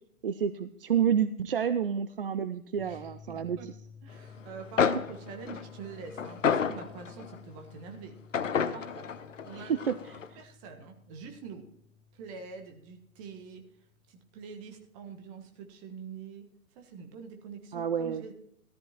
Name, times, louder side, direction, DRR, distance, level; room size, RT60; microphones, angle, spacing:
voice 1, 0.2-3.6 9.7-9.9 17.7-18.2, right 8 dB, 45° right, 13 dB, 0.5 m, -29 dB
sound 1, 2.8-14.6, left 6 dB, 10° left, 1.1 m, -54 dB
voice 2, 2.8-3.7 4.0-9.1 9.4-9.9 10.4-11.7 12.1-13.7 14.1-18.3, right 6 dB, 25° right, 5 dB, 1.4 m, -46 dB
sound 2, 4.5-4.6 4.8-7.4 8.3-10.3, left 6 dB, 60° left, 0.9 m, -30 dB
15.0 x 13.5 x 3.0 m, 0.71 s
figure-of-eight pair, 125°, 42 cm